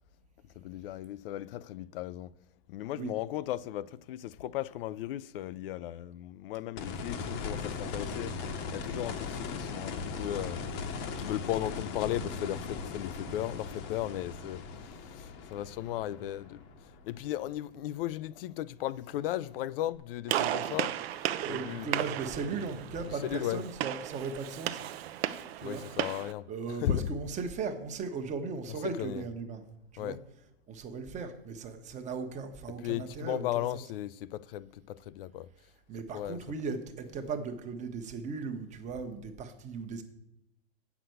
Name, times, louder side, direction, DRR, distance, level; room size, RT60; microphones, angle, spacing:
voice 1, 0.6-2.3 2.7-8.4 8.7-10.6 11.0-20.9 21.2-21.9 23.1-23.6 25.6-27.1 28.7-29.3 30.0-30.2 32.7-35.5 36.0-36.4, left 13 dB, 60° left, 0.5 m, -36 dB
sound 1, 6.8-17.7 19.9-20.0, left 5 dB, 35° left, 1.0 m, -39 dB
Gunshot gunfire, 20.3-26.3, right 12 dB, 70° right, 0.7 m, -35 dB
voice 2, 21.3-24.8 25.6-25.8 26.5-29.6 29.9-30.2 30.7-33.5 35.9-40.0, right 4 dB, 20° right, 1.1 m, -37 dB
8.1 x 6.0 x 7.8 m
supercardioid pair, 140°, 32 cm